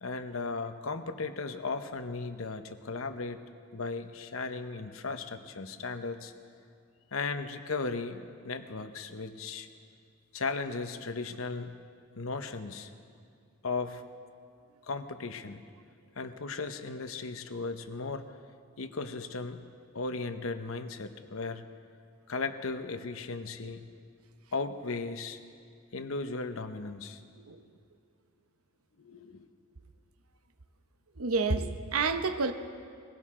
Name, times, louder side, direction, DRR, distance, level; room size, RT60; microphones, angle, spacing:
voice 1, 0.0-3.4 3.7-6.3 7.1-9.7 10.3-11.8 12.2-12.9 13.6-14.0 14.9-15.6 16.2-18.3 18.8-19.6 19.9-21.6 22.3-23.8 24.5-25.4 25.9-27.2 29.0-29.5, left 4 dB, 70° left, 9 dB, 0.8 m, -36 dB
voice 2, 31.2-32.5, right 4 dB, 85° right, 8 dB, 0.9 m, -29 dB
21.0 x 17.0 x 3.7 m, 2.3 s
head